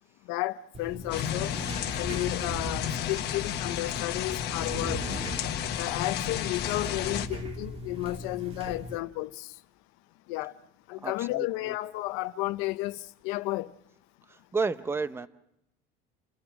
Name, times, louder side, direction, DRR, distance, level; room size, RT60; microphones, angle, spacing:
voice 1, 0.3-1.5 2.0-5.1 5.8-9.5 10.3-10.5 10.9-13.7, left 18 dB, 80° left, 0.8 m, -32 dB
sound 1, 0.7-9.0, right 1 dB, 30° right, 1.9 m, -39 dB
sound 2, 1.1-7.3, left 10 dB, 55° left, 1.4 m, -32 dB
voice 2, 11.0-11.7 14.3-15.3, right 4 dB, 10° right, 0.8 m, -32 dB
29.0 x 16.5 x 6.1 m
cardioid pair, 140°, 21 cm